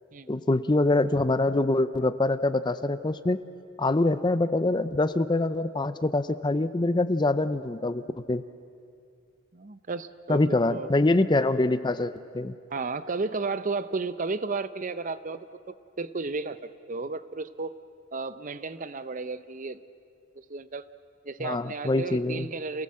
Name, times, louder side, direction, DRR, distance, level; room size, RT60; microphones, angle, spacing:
voice 1, 0.3-3.4 3.8-8.0 8.3-8.4 10.3-12.5 21.4-22.5, left 2 dB, 20° left, 13 dB, 0.5 m, -24 dB
voice 2, 9.5-10.4 10.7-10.9 12.7-17.8 18.1-19.8 20.4-20.9 21.2-22.8, right 3 dB, 40° right, 13 dB, 0.6 m, -33 dB
28.0 x 17.5 x 7.6 m, 2.4 s
head